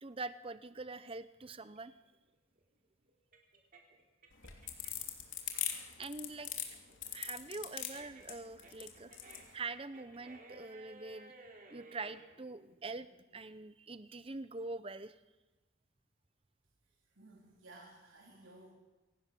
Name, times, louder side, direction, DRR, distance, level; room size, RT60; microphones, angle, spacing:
voice 1, 0.0-2.0 6.0-6.5 7.0-9.1 9.5-11.3 11.7-15.1, right 3 dB, 25° right, 13 dB, 0.7 m, -44 dB
sound 1, 1.7-5.1 5.5-12.3, right 2 dB, 45° right, 3.7 m, -57 dB
sound 2, 4.3-9.4, left 11 dB, 75° left, 3.1 m, -40 dB
voice 2, 17.2-18.7, right 2 dB, 85° right, -2 dB, 4.0 m, -56 dB
24.5 x 18.0 x 7.0 m, 1.1 s
head